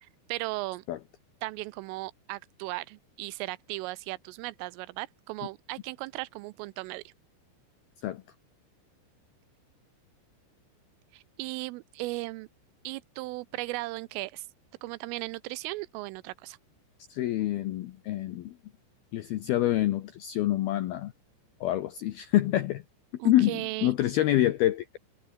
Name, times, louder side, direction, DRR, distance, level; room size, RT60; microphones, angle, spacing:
voice 1, 0.0-0.8 1.4-7.1 11.1-12.5 12.8-14.4 14.8-16.6 23.2-23.9, right 21 dB, 90° right, 3.3 m, -37 dB
voice 2, 17.1-18.5 19.1-21.1 21.6-22.8 23.3-25.0, left 14 dB, 80° left, 2.2 m, -26 dB
omnidirectional pair, 5.8 m